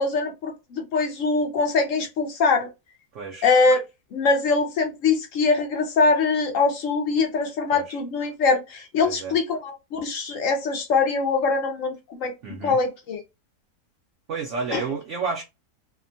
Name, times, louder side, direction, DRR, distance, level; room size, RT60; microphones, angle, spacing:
voice 1, 0.0-2.7 3.4-3.8 4.1-11.9 12.2-12.3 12.6-13.2 14.7-14.9, left 4 dB, 65° left, 0.9 m, -23 dB
voice 2, 3.1-3.5 7.7-8.0 9.0-9.3 12.4-12.8 14.3-15.4, right 5 dB, 65° right, 0.8 m, -31 dB
2.8 x 2.1 x 2.5 m
omnidirectional pair, 1.7 m